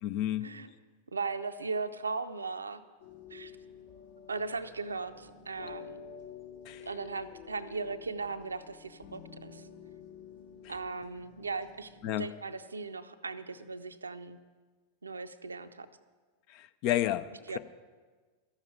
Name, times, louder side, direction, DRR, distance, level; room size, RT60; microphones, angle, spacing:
voice 1, 0.0-0.5 6.7-6.9 10.6-10.7 12.0-12.3 16.5-17.6, left 12 dB, 45° left, 13 dB, 0.5 m, -31 dB
voice 2, 1.1-2.8 3.3-3.5 4.3-6.0 6.9-9.6 10.7-11.9 12.2-14.4 15.0-15.9 17.5-17.6, right 4 dB, 75° right, 10 dB, 0.6 m, -37 dB
sound 1, 3.0-12.1, left 7 dB, 60° left, 2.5 m, -50 dB
12.5 x 7.3 x 8.9 m, 1.4 s
figure-of-eight pair, 90°, 0 cm